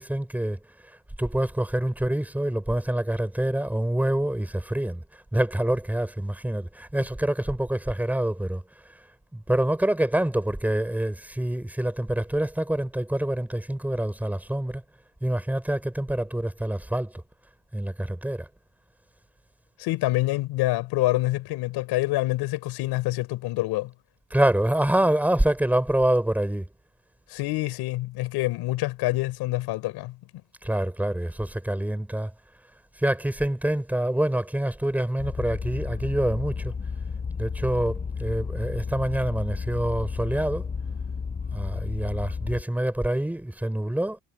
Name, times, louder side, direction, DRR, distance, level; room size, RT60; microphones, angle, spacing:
voice 1, 0.0-5.0 5.3-8.6 9.3-14.8 15.2-17.2 17.7-18.5 24.3-26.7 30.6-32.3 33.0-36.7 37.4-40.7 41.5-44.2, right 1 dB, 5° right, 5.5 m, -26 dB
voice 2, 19.8-23.9 27.3-30.2, left 18 dB, 85° left, 5.2 m, -26 dB
sound 1, 35.2-42.6, left 5 dB, 25° left, 5.8 m, -32 dB
cardioid pair, 145°, 38 cm